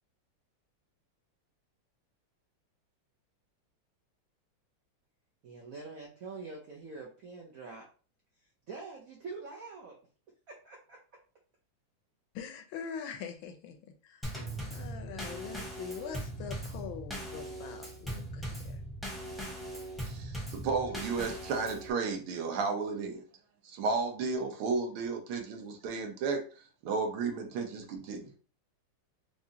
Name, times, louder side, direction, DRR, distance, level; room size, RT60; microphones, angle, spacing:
voice 1, 5.4-7.9 8.7-10.0 10.5-11.0, right 4 dB, 65° right, 0.8 m, -45 dB
voice 2, 12.3-13.8 14.0-14.3 14.7-18.8, left 7 dB, 75° left, 1.3 m, -43 dB
Drum kit / Snare drum / Bass drum, 14.2-21.9, right 1 dB, ahead, 0.6 m, -40 dB
voice 3, 20.1-23.2 23.6-26.5 26.8-28.3, right 4 dB, 80° right, 1.7 m, -33 dB
4.9 x 2.5 x 2.7 m
omnidirectional pair, 2.4 m